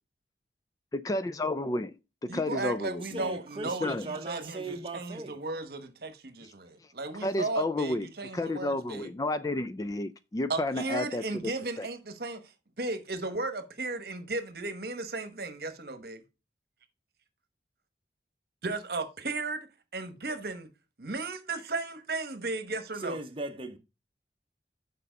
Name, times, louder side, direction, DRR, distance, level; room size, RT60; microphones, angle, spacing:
voice 1, 0.9-2.0 2.2-3.3 3.8-4.1 7.2-8.1 8.3-11.5 11.8-11.9, left 2 dB, 20° left, 0.3 m, -31 dB
voice 2, 2.3-9.1 10.5-12.4 12.8-16.2 18.6-19.7 19.9-20.7 21.0-23.2, right 3 dB, 55° right, 1.1 m, -35 dB
voice 3, 3.0-5.4 23.0-23.8, right 2 dB, 30° right, 0.9 m, -38 dB
6.8 x 5.4 x 5.1 m
head